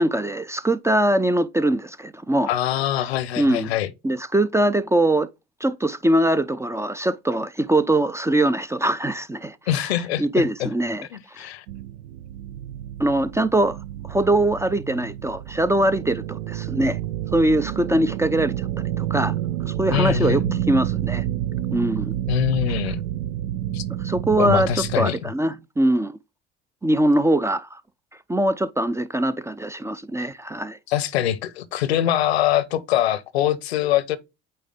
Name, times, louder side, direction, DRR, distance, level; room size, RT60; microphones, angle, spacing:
voice 1, 0.0-2.5 3.4-3.7 4.0-5.3 5.6-9.6 10.2-11.1 11.3-11.5 13.0-13.8 14.0-17.0 17.3-18.7 19.0-19.3 19.7-21.2 21.7-22.1 24.0-24.7 25.0-26.2 26.8-27.8 28.3-30.8, right 1 dB, 10° right, 0.4 m, -22 dB
voice 2, 2.5-3.9 9.7-10.3 10.6-10.7 11.1-11.6 19.9-20.6 22.3-23.0 23.7-23.8 24.4-25.2 30.9-34.2, left 12 dB, 80° left, 0.7 m, -23 dB
sound 1, 11.7-25.0, right 12 dB, 80° right, 0.5 m, -29 dB
8.7 x 3.4 x 3.5 m
hypercardioid pair, 65°, 31 cm